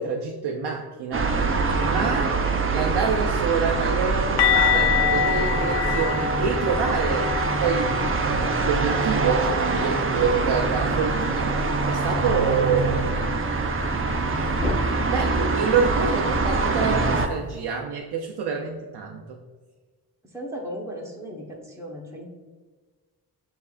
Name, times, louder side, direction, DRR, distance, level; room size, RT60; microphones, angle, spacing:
voice 1, 0.0-2.4 2.7-7.9 8.2-13.1 15.0-19.4, right 5 dB, 70° right, 1 dB, 0.6 m, -27 dB
sound 1, 1.1-17.3, right 3 dB, 30° right, 0.7 m, -24 dB
sound 2, 4.4-10.2 10.4-10.7 11.0-11.2 14.4-14.5, left 9 dB, 75° left, 0.5 m, -26 dB
Thunder, 7.0-14.7, left 1 dB, 50° left, 1.4 m, -42 dB
voice 2, 16.1-16.6 20.3-22.2, equal, 5° right, -3 dB, 1.2 m, -36 dB
6.7 x 2.7 x 2.4 m, 1.4 s
supercardioid pair, 45°, 41 cm